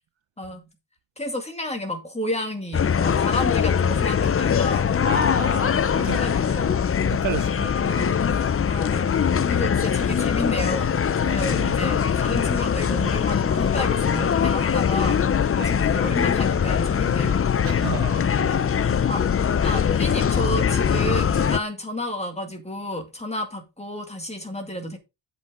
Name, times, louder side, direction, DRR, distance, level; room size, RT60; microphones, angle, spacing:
voice 1, 0.4-0.7 1.2-4.9 5.9-6.7 7.9-8.1 8.7-9.1 9.5-11.0 11.2-15.2 15.7-17.4 19.1-19.2 19.6-25.0, left 1 dB, 15° left, 2.2 m, -31 dB
sound 1, 2.7-21.6, left 7 dB, 30° left, 0.4 m, -22 dB
voice 2, 5.0-6.4 7.0-8.0 11.2-11.9 15.5-15.8 17.6-18.9, right 10 dB, 75° right, 0.8 m, -34 dB
8.2 x 7.7 x 3.7 m
wide cardioid pair, 130°, 46 cm